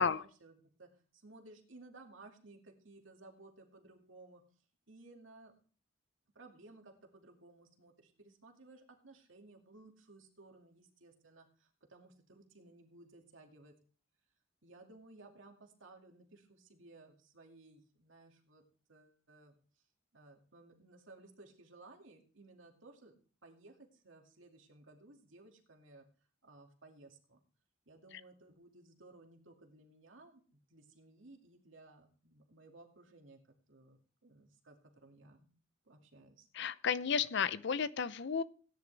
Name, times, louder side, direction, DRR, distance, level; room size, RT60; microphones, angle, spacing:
voice 1, 0.0-4.4 4.9-5.5 6.3-13.7 14.6-18.6 18.9-19.6 20.1-23.1 23.4-26.1 26.4-27.4 27.9-33.4 33.7-35.5 35.8-36.5, right 2 dB, 70° right, 2 dB, 2.3 m, -58 dB
voice 2, 36.5-38.4, left 6 dB, 60° left, 16 dB, 0.6 m, -32 dB
17.0 x 10.0 x 3.4 m, 0.42 s
head